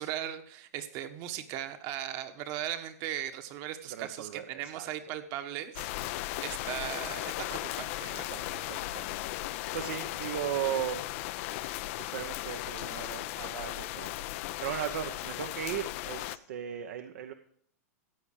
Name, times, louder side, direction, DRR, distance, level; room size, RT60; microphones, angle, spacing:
voice 1, 0.0-8.3, right 11 dB, 45° right, 9 dB, 1.4 m, -38 dB
voice 2, 3.9-4.9 8.3-11.1 12.0-17.3, right 10 dB, 65° right, 7 dB, 1.0 m, -37 dB
sound 1, 5.8-16.4, left 16 dB, 50° left, 0.6 m, -37 dB
14.5 x 8.7 x 5.0 m, 0.62 s
hypercardioid pair, 125°, 9 cm